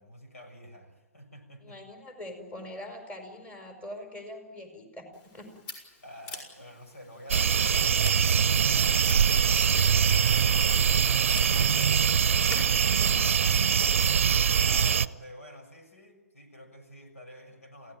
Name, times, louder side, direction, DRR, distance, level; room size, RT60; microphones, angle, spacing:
voice 1, 0.0-1.8 6.0-10.8 11.4-11.7 12.3-12.6 13.0-13.1 14.6-18.0, left 1 dB, 70° left, 6 dB, 6.6 m, -49 dB
voice 2, 1.6-5.5 11.5-12.6 13.0-13.1, left 1 dB, 15° left, 6 dB, 5.2 m, -43 dB
Scissors, 5.1-12.5, left 4 dB, 35° left, 6.7 m, -46 dB
sound 1, 7.3-15.1, right 7 dB, 60° right, 0.7 m, -23 dB
29.0 x 16.5 x 9.2 m, 1.2 s
figure-of-eight pair, 125°, 8 cm